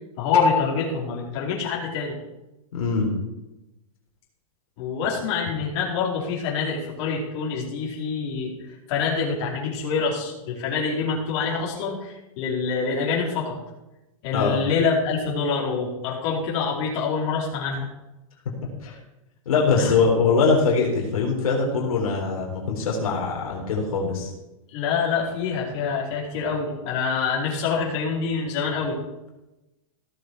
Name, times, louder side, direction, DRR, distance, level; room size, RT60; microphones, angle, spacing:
voice 1, 0.2-2.2 4.8-13.6 14.2-17.9 19.7-20.0 24.7-29.0, left 5 dB, 50° left, -4 dB, 4.3 m, -26 dB
voice 2, 2.7-3.2 14.3-14.6 18.8-18.9 19.5-24.3, left 4 dB, 80° left, -1 dB, 4.0 m, -22 dB
16.5 x 7.4 x 4.7 m, 0.97 s
hypercardioid pair, 150°, 18 cm